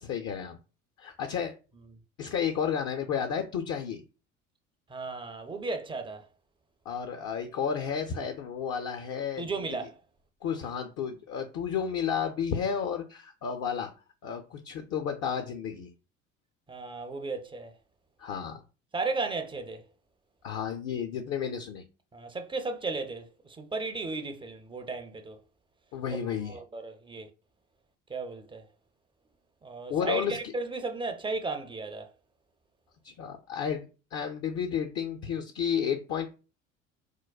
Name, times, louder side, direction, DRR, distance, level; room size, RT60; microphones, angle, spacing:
voice 1, 0.0-0.6 1.0-1.5 2.2-4.0 6.9-9.8 10.4-13.9 14.2-15.9 18.2-18.6 20.4-21.8 25.9-26.6 29.9-30.5 33.0-36.3, left 7 dB, 45° left, 0.5 m, -32 dB
voice 2, 4.9-6.3 9.4-10.0 16.7-17.7 18.9-19.8 22.1-25.4 26.2-27.3 28.1-28.7 29.6-32.1, right 3 dB, 15° right, 0.4 m, -35 dB
4.5 x 2.1 x 2.3 m
hypercardioid pair, 65°, 37 cm